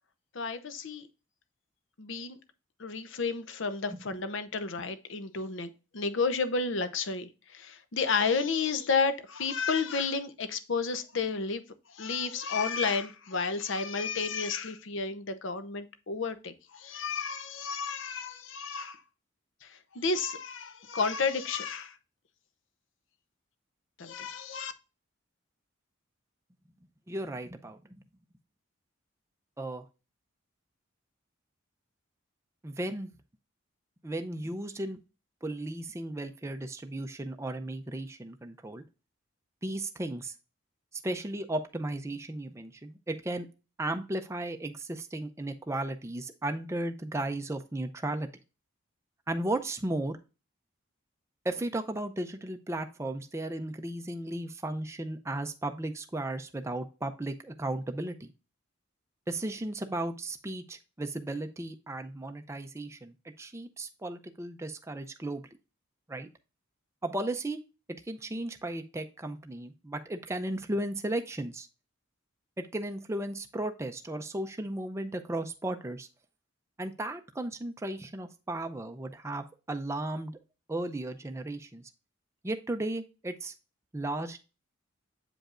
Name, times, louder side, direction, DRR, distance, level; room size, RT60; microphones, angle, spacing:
voice 1, 0.3-1.1 2.0-2.4 2.8-11.6 11.9-19.0 19.6-21.9 24.0-24.7, left 4 dB, 65° left, 0.7 m, -31 dB
voice 2, 27.1-28.0 29.6-29.8 32.6-33.1 34.0-35.0 35.4-38.8 39.6-40.3 40.9-43.5 43.8-48.3 49.3-50.2 51.4-58.3 59.3-65.5 66.1-66.3 67.0-67.6 68.0-71.7 72.6-76.1 76.8-80.4 80.7-81.8 82.4-83.5 83.9-84.4, right 1 dB, 15° right, 0.4 m, -35 dB
7.7 x 5.1 x 2.4 m
head